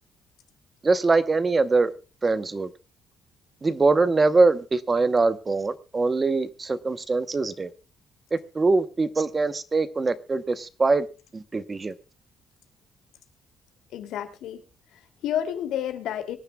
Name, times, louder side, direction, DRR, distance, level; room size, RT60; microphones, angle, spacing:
voice 1, 0.8-1.9 2.2-2.7 3.6-7.7 8.3-11.1 11.3-11.9, right 3 dB, 20° right, 0.8 m, -23 dB
voice 2, 13.9-14.6 14.9-16.4, left 10 dB, 85° left, 2.5 m, -30 dB
24.5 x 10.5 x 2.2 m
cardioid pair, 145°, 0 cm